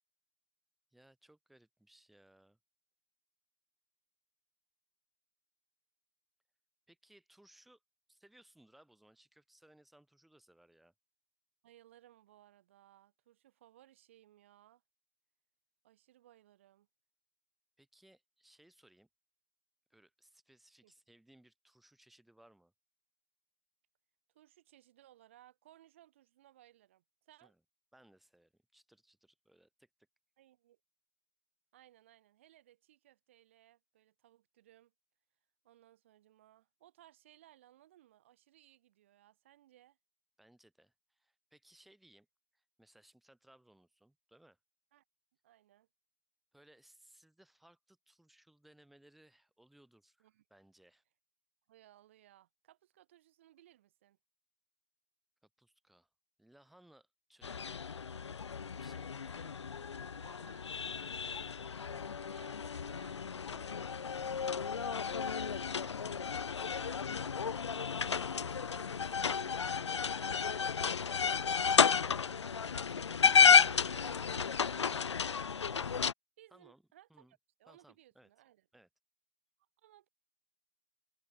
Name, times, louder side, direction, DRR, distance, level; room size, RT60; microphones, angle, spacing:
voice 1, 0.9-2.6 6.9-7.8 8.1-10.9 17.8-19.1 19.9-22.7 27.4-27.6 27.9-29.9 40.4-42.3 42.5-44.6 46.5-51.0 55.6-56.1 56.4-57.8 58.7-59.5 61.9-62.1 63.5-63.8 73.2-75.6 76.5-76.8 77.1-77.3 77.7-78.3 78.7-78.9, right 1 dB, ahead, 7.7 m, -64 dB
voice 2, 11.6-14.8 15.8-16.9 20.8-20.9 24.3-27.5 30.4-30.8 31.7-34.9 35.6-40.0 44.9-45.0 45.4-45.9 50.2-50.4 51.7-54.2 59.4-59.7 60.1-61.4 62.2-63.5 64.8-67.7 68.2-71.6 73.2-74.2 75.4-75.6 76.4-78.7 79.8-80.1, right 13 dB, 20° right, 3.7 m, -63 dB
sound 1, 57.4-76.1, left 6 dB, 50° left, 0.6 m, -32 dB
hypercardioid pair, 175°, 19 cm